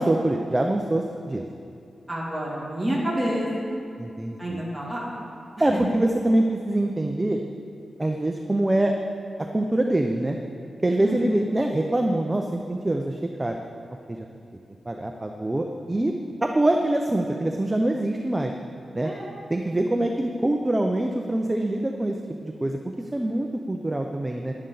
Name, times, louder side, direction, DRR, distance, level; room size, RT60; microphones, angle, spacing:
voice 1, 0.0-1.4 4.0-4.6 5.6-7.4 8.0-8.9 9.5-10.4 10.8-13.6 14.1-14.2 14.9-16.1 16.4-18.5 18.9-19.1 19.5-22.2 22.4-22.8 23.1-24.5, right 1 dB, 15° right, 3 dB, 0.5 m, -24 dB
voice 2, 2.1-3.8 4.4-5.1 11.0-11.2 19.0-19.3, right 1 dB, ahead, -6 dB, 2.5 m, -28 dB
10.5 x 10.5 x 3.9 m, 2.4 s
wide cardioid pair, 150°, 0 cm